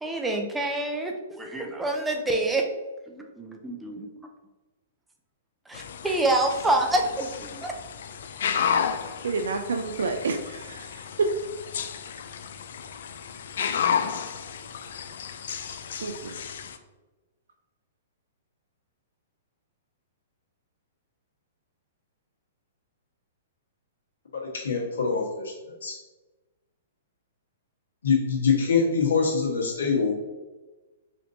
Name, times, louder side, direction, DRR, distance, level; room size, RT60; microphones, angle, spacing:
voice 1, 0.0-2.6 3.1-4.1 5.7-7.7, right 2 dB, 5° right, 2 dB, 0.5 m, -27 dB
sound 1, 5.7-16.8, left 7 dB, 70° left, 0.3 m, -32 dB
voice 2, 9.2-11.1 16.0-16.3, right 4 dB, 85° right, 4 dB, 0.3 m, -30 dB
voice 3, 24.3-25.5 25.8-26.0 28.0-30.1, left 5 dB, 85° left, -2 dB, 1.2 m, -24 dB
4.3 x 2.6 x 2.7 m, 1.2 s
hypercardioid pair, 140°, 0 cm